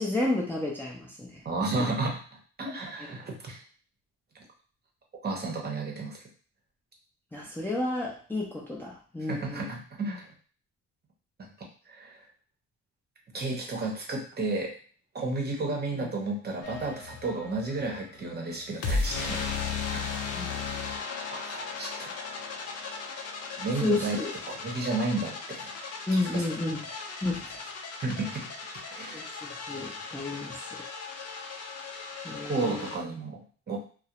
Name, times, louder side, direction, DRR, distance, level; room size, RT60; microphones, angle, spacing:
voice 1, 0.0-1.4 7.3-9.7 15.6-15.8 20.3-20.5 23.8-24.3 26.1-26.8 27.2-27.7 29.1-30.6 32.2-32.9, left 2 dB, 5° left, -3 dB, 0.5 m, -31 dB
voice 2, 1.4-2.2 2.6-3.6 5.2-6.2 9.3-10.3 11.9-12.2 13.3-14.7 15.1-19.4 19.9-20.1 21.3-22.1 23.6-24.2 24.5-25.7 26.1-26.4 28.0-28.5 28.9-29.2 32.5-33.8, right 3 dB, 35° right, 0 dB, 0.7 m, -32 dB
sound 1, 16.6-33.0, left 4 dB, 55° left, 0.6 m, -36 dB
2.3 x 2.0 x 2.9 m, 0.42 s
cardioid pair, 90°, 30 cm